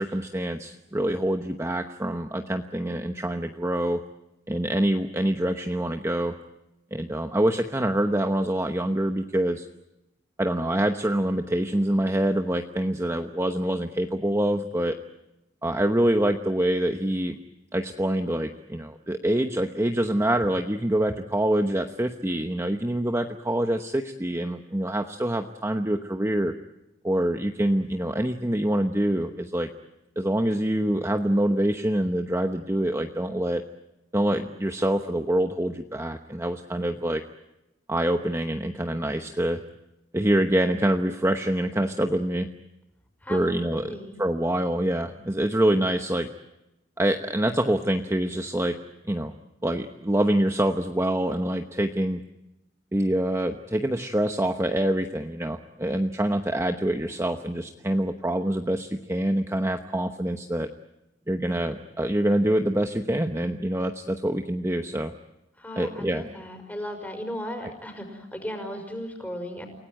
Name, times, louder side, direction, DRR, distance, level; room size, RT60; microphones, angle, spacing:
voice 1, 0.0-4.0 4.5-6.3 6.9-9.7 10.4-14.9 15.6-17.4 17.7-26.5 27.0-29.7 30.2-33.6 34.1-37.2 37.9-39.6 40.1-42.5 43.3-43.9 44.2-46.3 47.0-48.8 49.0-49.3 49.6-52.2 52.9-60.7 61.3-65.1 65.8-66.2 67.6-67.7, right 1 dB, 15° right, 5 dB, 1.0 m, -25 dB
voice 2, 43.2-44.2 65.6-69.7, equal, 10° left, 5 dB, 5.5 m, -36 dB
29.0 x 18.0 x 9.2 m, 0.95 s
head